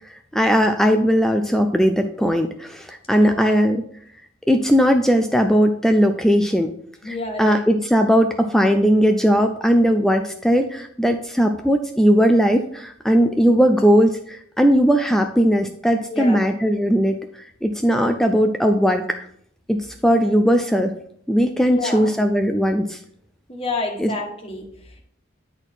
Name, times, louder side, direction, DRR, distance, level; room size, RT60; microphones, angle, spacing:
voice 1, 0.1-3.8 4.5-6.7 7.1-17.2 17.6-19.3 19.7-20.9 21.3-23.0 24.0-24.1, equal, ahead, 5 dB, 0.4 m, -18 dB
voice 2, 3.1-3.5 7.0-7.6 16.1-16.4 21.6-22.1 23.5-25.0, left 2 dB, 30° left, 1 dB, 1.5 m, -29 dB
9.7 x 4.3 x 4.4 m, 0.65 s
head